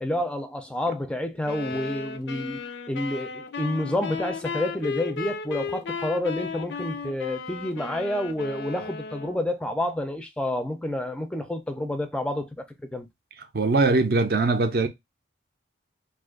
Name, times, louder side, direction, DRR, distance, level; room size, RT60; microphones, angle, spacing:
voice 1, 0.0-12.5 12.9-13.1, left 1 dB, 5° left, 0.4 m, -29 dB
sound 1, 1.4-9.4, left 5 dB, 75° left, 0.4 m, -35 dB
voice 2, 13.5-14.9, right 3 dB, 55° right, 0.5 m, -21 dB
2.5 x 2.4 x 3.6 m
head